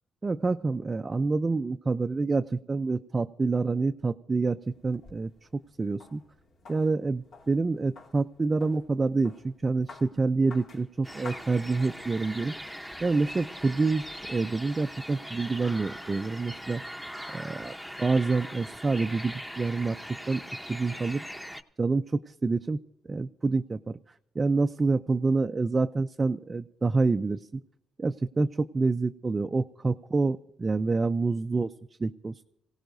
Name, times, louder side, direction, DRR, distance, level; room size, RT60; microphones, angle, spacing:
voice 1, 0.2-6.2 6.7-9.3 9.6-12.5 13.0-14.0 14.3-16.8 17.3-20.0 20.3-20.4 20.7-21.2 21.8-22.8 23.1-24.0 24.4-27.6 28.0-31.7 32.0-32.4, right 3 dB, 25° right, 6 dB, 0.4 m, -27 dB
sound 1, 4.6-12.2, left 4 dB, 65° left, 2.4 m, -52 dB
sound 2, 11.0-21.6, equal, 5° left, 0.9 m, -41 dB
26.0 x 17.0 x 2.6 m, 0.81 s
cardioid pair, 90°, 0 cm